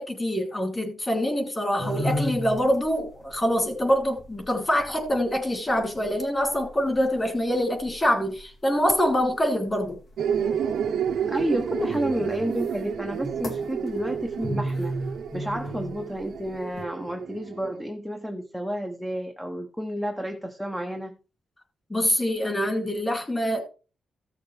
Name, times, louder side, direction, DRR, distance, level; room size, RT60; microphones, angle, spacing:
voice 1, 0.0-10.0 21.9-23.6, equal, 15° left, 2 dB, 3.2 m, -25 dB
sound 1, 1.8-16.8, equal, 55° left, 3.2 m, -36 dB
sound 2, 10.2-17.8, right 8 dB, 80° right, 0.9 m, -30 dB
voice 2, 11.3-15.0 15.3-21.1, equal, ahead, 4 dB, 0.9 m, -30 dB
15.5 x 6.5 x 3.3 m, 0.35 s
wide cardioid pair, 155°, 0 cm